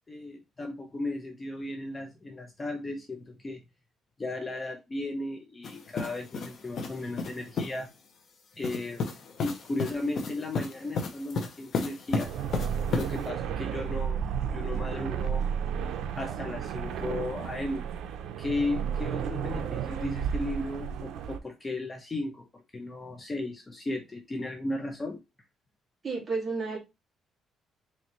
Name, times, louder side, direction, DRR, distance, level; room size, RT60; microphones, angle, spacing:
voice 1, 0.1-3.6 4.2-7.9 8.6-9.1 9.4-12.3 12.9-14.2 14.5-15.5 16.2-17.9 18.4-25.2, left 2 dB, 20° left, 0.8 m, -35 dB
sound 1, 5.6-7.8 8.6-13.3, left 4 dB, 50° left, 0.9 m, -34 dB
sound 2, 12.1-21.4, right 8 dB, 80° right, 0.6 m, -32 dB
voice 2, 26.0-26.8, right 4 dB, 25° right, 2.0 m, -31 dB
4.4 x 3.2 x 3.0 m
cardioid pair, 140°, 0 cm